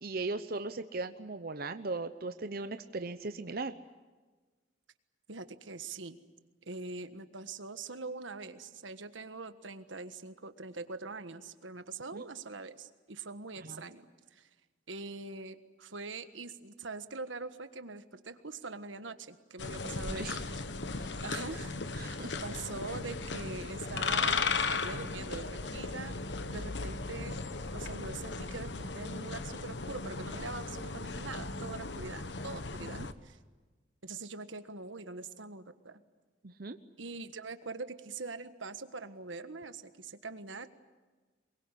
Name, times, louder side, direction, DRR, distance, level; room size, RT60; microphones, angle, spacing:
voice 1, 0.0-3.7 12.1-12.2 13.6-13.8 20.1-20.4 20.9-21.2 22.0-22.3 32.9-33.1 36.4-36.8, right 3 dB, 50° right, 9 dB, 0.8 m, -38 dB
voice 2, 5.3-6.2 6.7-14.5 14.9-20.3 21.2-27.4 27.7-33.4 34.0-36.0 37.0-40.7, right 3 dB, 90° right, 10 dB, 1.5 m, -43 dB
sound 1, 19.6-33.1, left 4 dB, 65° left, 1.2 m, -36 dB
23.5 x 22.5 x 10.0 m, 1.3 s
head